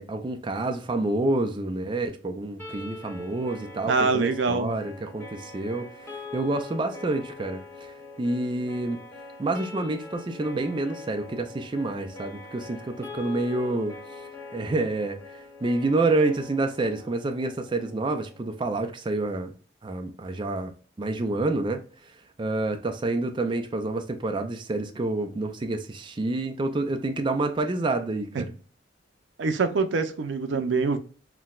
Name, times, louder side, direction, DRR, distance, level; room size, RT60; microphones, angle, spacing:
voice 1, 0.0-7.9 8.2-9.0 9.4-13.9 14.5-15.2 15.6-19.5 19.8-20.7 21.0-21.8 22.4-28.5, right 2 dB, 25° right, 0.4 m, -28 dB
sound 1, 2.6-18.6, left 3 dB, 15° left, 1.0 m, -43 dB
voice 2, 3.9-4.7 28.3-28.4 29.4-31.0, right 4 dB, 85° right, 0.5 m, -24 dB
5.8 x 2.1 x 2.3 m
head